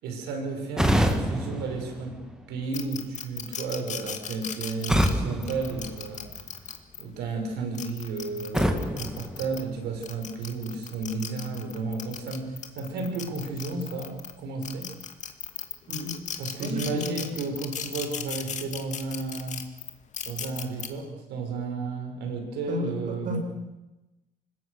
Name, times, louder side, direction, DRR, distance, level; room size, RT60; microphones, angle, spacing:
voice 1, 0.0-2.2 2.5-6.3 7.0-14.9 16.4-19.6 20.2-23.4, right 3 dB, 85° right, 4 dB, 6.1 m, -33 dB
sound 1, 0.8-2.7 4.9-6.6 8.5-10.2, equal, 5° right, 2.3 m, -28 dB
sound 2, 2.7-7.0 7.6-9.6 10.0-14.3 14.6-20.9, left 7 dB, 45° left, 2.2 m, -37 dB
voice 2, 15.9-16.2 16.6-17.1 22.7-23.4, equal, 50° right, 3 dB, 6.8 m, -33 dB
25.5 x 20.5 x 6.7 m, 1.0 s
cardioid pair, 110°, 17 cm